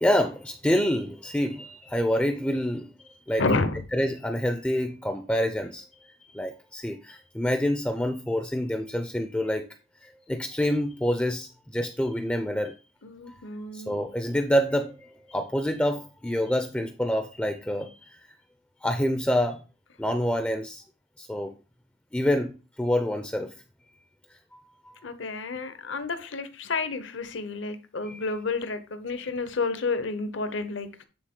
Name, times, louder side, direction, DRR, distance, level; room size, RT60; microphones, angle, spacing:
voice 1, 0.0-3.4 3.9-9.7 10.0-12.7 13.3-13.4 13.7-18.1 18.8-19.6 20.0-20.8 21.2-21.5 22.1-23.5 24.5-25.0 28.1-28.2, equal, 5° left, 6 dB, 0.4 m, -27 dB
voice 2, 3.4-3.8 13.0-13.9 25.0-31.0, left 3 dB, 70° left, 11 dB, 0.8 m, -30 dB
9.0 x 3.9 x 3.7 m, 0.34 s
head